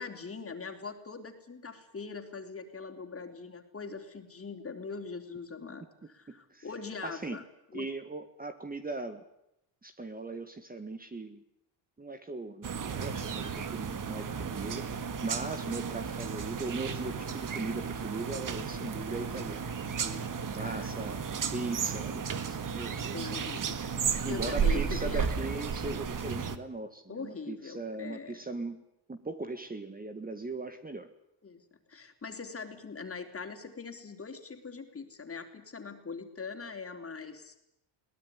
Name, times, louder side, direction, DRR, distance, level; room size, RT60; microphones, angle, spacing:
voice 1, 0.0-7.4 7.7-7.9 20.5-21.0 23.1-23.9 24.2-25.3 27.1-28.4 31.4-31.6 31.9-37.6, left 4 dB, 30° left, 5 dB, 3.7 m, -42 dB
voice 2, 6.0-6.6 7.0-7.4 7.7-9.2 9.8-11.4 12.0-20.2 20.5-21.2 21.5-23.4 24.2-28.8 29.1-31.1, right 3 dB, 20° right, 8 dB, 1.7 m, -39 dB
sound 1, 12.6-26.6, right 6 dB, 40° right, 1.9 m, -34 dB
22.0 x 18.0 x 9.8 m, 0.83 s
cardioid pair, 105°, 48 cm